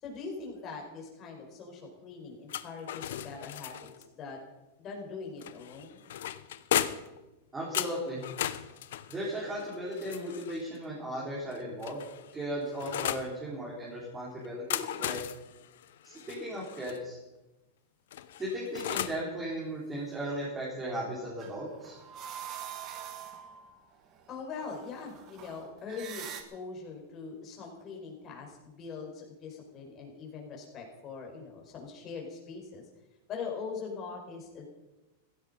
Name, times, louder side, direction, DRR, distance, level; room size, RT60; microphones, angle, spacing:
voice 1, 0.0-4.4 4.8-6.0 24.3-32.8 33.3-34.7, left 5 dB, 30° left, 0 dB, 5.0 m, -42 dB
sound 1, 2.5-4.1 5.4-7.2 7.7-10.7 11.5-13.3 14.4-17.0 18.1-19.3, left 11 dB, 75° left, 0.9 m, -36 dB
voice 2, 7.5-8.2 9.1-12.0 12.3-15.2 16.0-17.2 18.4-22.0, right 1 dB, 15° right, -6 dB, 4.4 m, -36 dB
sound 2, 21.4-26.4, right 9 dB, 35° right, 1.9 m, -44 dB
16.0 x 15.5 x 5.3 m, 1.0 s
supercardioid pair, 145°, 0 cm